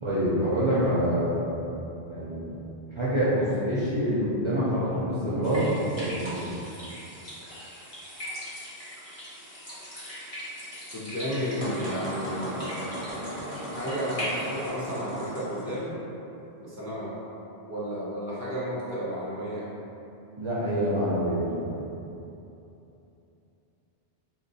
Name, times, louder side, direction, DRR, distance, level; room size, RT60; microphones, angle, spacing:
voice 1, 0.0-1.7 2.1-2.6 3.0-6.6 20.4-22.0, equal, 35° right, -10 dB, 0.5 m, -26 dB
sound 1, 5.4-14.7, equal, 35° left, 1.1 m, -40 dB
voice 2, 10.9-12.7 13.7-16.0 16.6-17.2 17.7-19.7, equal, 20° left, -9 dB, 0.5 m, -32 dB
sound 2, 11.6-15.8, equal, 10° right, 1.0 m, -36 dB
2.9 x 2.5 x 3.9 m, 2.9 s
omnidirectional pair, 1.0 m